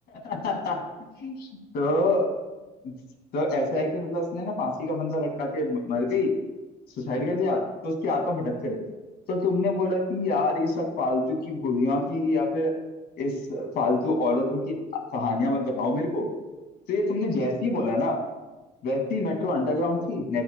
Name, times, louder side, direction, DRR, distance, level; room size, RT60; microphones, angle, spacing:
voice 1, 0.2-0.8 1.2-1.5 1.7-2.3 2.8-2.9 3.3-6.3 7.0-8.8 9.3-12.7 13.2-16.3 16.9-18.2 18.8-20.4, left 2 dB, 70° left, 2 dB, 2.2 m, -26 dB
13.5 x 9.9 x 2.2 m, 1.2 s
cardioid pair, 110°, 17 cm